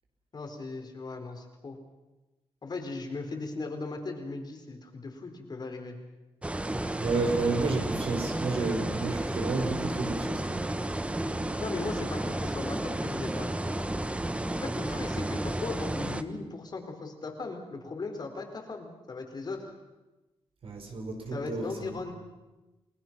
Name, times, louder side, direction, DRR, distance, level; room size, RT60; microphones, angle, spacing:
voice 1, 0.3-1.8 2.6-6.0 11.6-19.7 21.3-22.1, left 3 dB, 40° left, 4 dB, 4.0 m, -38 dB
sound 1, 6.4-16.2, right 1 dB, 10° right, 1.1 m, -32 dB
voice 2, 7.0-10.7 20.6-21.6 21.9-22.0, right 3 dB, 65° right, 3 dB, 5.2 m, -31 dB
29.5 x 19.5 x 6.0 m, 1.1 s
wide cardioid pair, 120°, 10 cm